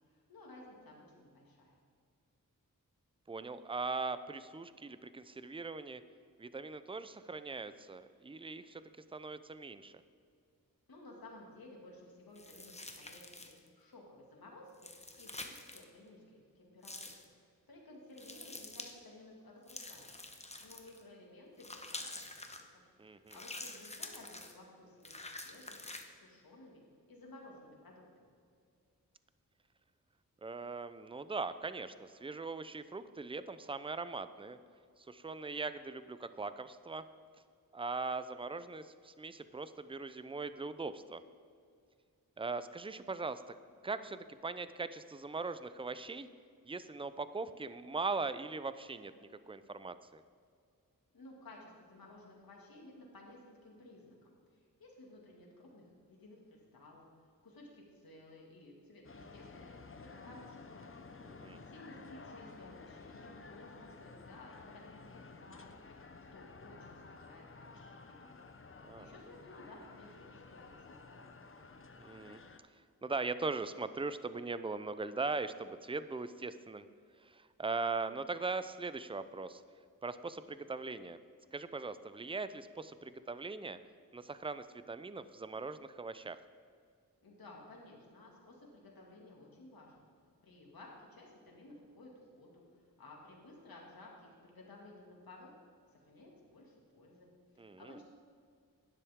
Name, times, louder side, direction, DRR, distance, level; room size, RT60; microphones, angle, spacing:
voice 1, 0.1-1.8 10.9-20.1 20.4-22.6 23.1-25.2 25.4-25.9 26.2-26.8 27.1-28.3 51.1-54.3 54.8-57.1 57.4-60.9 61.7-65.8 66.0-68.3 68.7-71.2 87.2-90.0 90.4-95.5 95.9-97.3 97.5-98.0, left 2 dB, 80° left, -2 dB, 2.3 m, -56 dB
voice 2, 3.3-6.0 6.4-8.8 9.1-10.0 23.0-23.4 30.4-34.6 35.1-37.0 37.7-41.2 42.4-43.6 43.8-46.3 46.7-49.1 49.5-50.2 61.2-61.6 68.8-69.1 72.0-72.4 73.0-76.8 77.2-79.6 80.0-81.2 81.5-83.8 84.1-86.4 97.6-98.0, right 3 dB, 15° right, 13 dB, 0.5 m, -40 dB
sound 1, 12.3-13.7 14.7-15.8 16.8-17.2 18.2-18.9 19.7-21.0 21.6-22.6 23.3-24.6 25.0-26.0, left 2 dB, 20° left, 1.0 m, -47 dB
sound 2, 59.0-72.6, left 4 dB, 35° left, 0.8 m, -53 dB
12.0 x 9.9 x 3.6 m, 2.2 s
wide cardioid pair, 70°, 35 cm